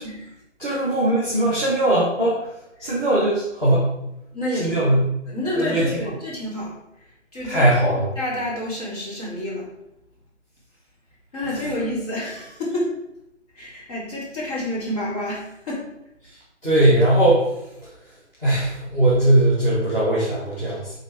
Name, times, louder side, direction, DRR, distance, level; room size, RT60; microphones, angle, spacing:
voice 1, 0.6-2.4 2.8-3.9 4.6-5.1 5.5-6.0 7.4-8.1 16.6-17.4 18.4-20.9, right 1 dB, 10° left, -13 dB, 1.5 m, -19 dB
voice 2, 4.3-4.9 5.3-6.8 7.3-7.7 8.2-9.7 11.3-12.9 13.5-15.8, left 1 dB, 30° left, -6 dB, 3.2 m, -29 dB
9.8 x 4.1 x 4.8 m, 0.86 s
hypercardioid pair, 165°, 36 cm